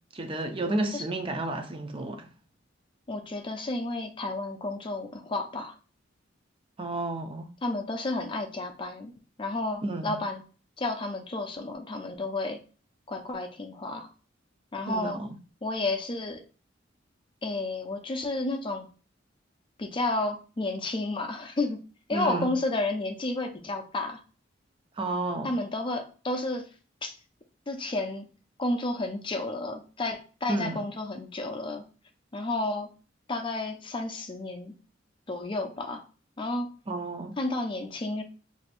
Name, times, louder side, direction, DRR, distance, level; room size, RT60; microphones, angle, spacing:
voice 1, 0.1-2.3 6.8-7.5 9.8-10.2 14.9-15.4 22.1-22.5 25.0-25.5 30.5-30.8 36.9-37.3, right 2 dB, 30° right, 0.5 m, -31 dB
voice 2, 3.1-5.7 7.6-9.1 9.4-10.4 10.8-12.6 13.1-14.1 14.7-15.2 15.6-16.4 17.4-18.9 19.8-21.8 22.1-24.2 25.4-26.7 27.0-27.2 27.7-28.3 28.6-31.8 32.3-32.9 33.3-34.7 35.3-36.0 36.4-36.7 37.4-38.2, left 2 dB, 25° left, 0.5 m, -31 dB
4.6 x 2.7 x 2.5 m
head